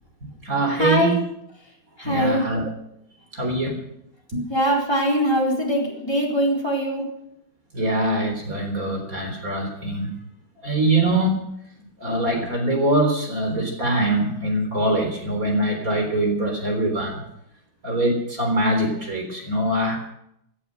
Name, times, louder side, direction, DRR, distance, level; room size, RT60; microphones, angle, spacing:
voice 1, 0.2-1.2 2.0-2.6 3.3-3.8 4.3-4.5 7.7-10.1 10.6-11.4 12.0-17.2 17.8-20.0, right 1 dB, 40° right, 2 dB, 4.2 m, -23 dB
voice 2, 0.7-1.2 1.6-2.5 4.5-7.1, equal, 10° left, -2 dB, 4.1 m, -22 dB
17.5 x 11.0 x 6.4 m, 0.77 s
omnidirectional pair, 2.3 m